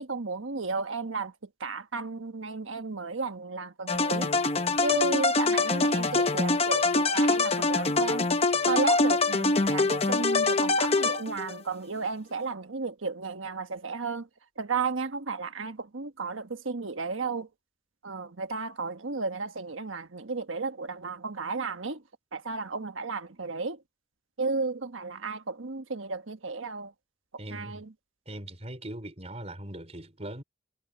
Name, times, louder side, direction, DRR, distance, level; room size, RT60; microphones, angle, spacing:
voice 1, 0.0-1.3 1.6-4.3 4.8-8.3 8.7-14.3 14.6-17.5 18.0-22.0 22.3-23.8 24.4-26.9 27.5-27.9, right 4 dB, 85° right, 1.3 m, -33 dB
sound 1, 3.9-11.6, left 3 dB, 30° left, 1.0 m, -24 dB
voice 2, 27.4-27.9 28.3-30.4, right 1 dB, 30° right, 4.8 m, -40 dB
head